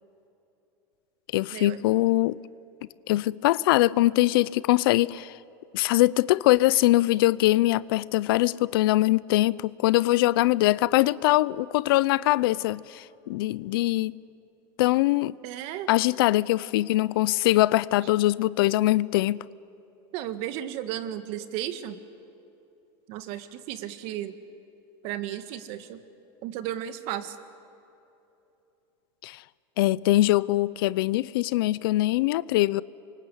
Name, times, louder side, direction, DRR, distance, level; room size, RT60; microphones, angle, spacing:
voice 1, 1.3-2.4 3.1-5.3 5.7-14.1 14.8-15.3 15.9-19.4 29.2-29.4 29.8-32.8, left 17 dB, 85° left, 0.6 m, -22 dB
voice 2, 15.4-15.9 18.0-18.1 20.1-22.0 23.1-24.4 25.0-26.0 26.4-27.4, right 12 dB, 55° right, 1.7 m, -34 dB
27.0 x 24.0 x 8.2 m
supercardioid pair, 150°, 12 cm